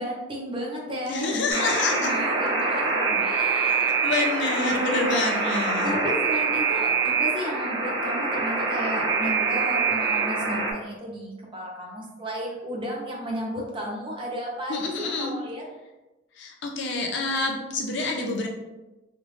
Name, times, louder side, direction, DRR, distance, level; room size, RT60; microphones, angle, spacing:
voice 1, 0.0-4.1 5.8-15.6, equal, 25° right, -2 dB, 0.7 m, -33 dB
voice 2, 1.1-2.1 4.0-6.0 14.7-15.3 16.3-18.5, left 3 dB, 65° left, 2 dB, 0.5 m, -27 dB
Alarm, 1.5-10.7, right 4 dB, 85° right, 1.1 m, -25 dB
3.4 x 2.5 x 3.1 m, 1.0 s
head